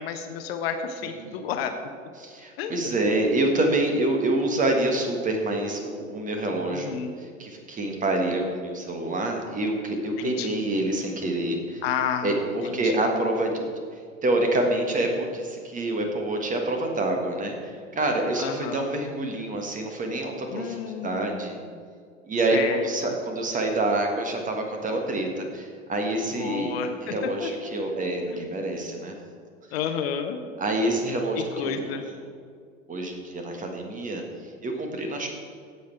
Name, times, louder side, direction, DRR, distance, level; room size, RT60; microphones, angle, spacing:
voice 1, 0.0-1.7 2.6-2.9 6.7-7.1 10.2-10.5 11.8-12.4 12.6-12.9 18.4-18.9 20.5-21.7 22.5-23.1 26.3-27.5 28.3-28.5 29.7-30.4 31.4-32.0, left 7 dB, 50° left, 7 dB, 1.0 m, -31 dB
voice 2, 1.0-1.4 2.2-11.8 12.2-13.7 14.2-21.6 22.3-26.7 27.0-29.1 30.6-32.0 32.9-34.2 34.6-35.3, right 2 dB, 20° right, 3 dB, 1.6 m, -27 dB
16.0 x 5.7 x 4.6 m, 2.1 s
figure-of-eight pair, 85°, 39 cm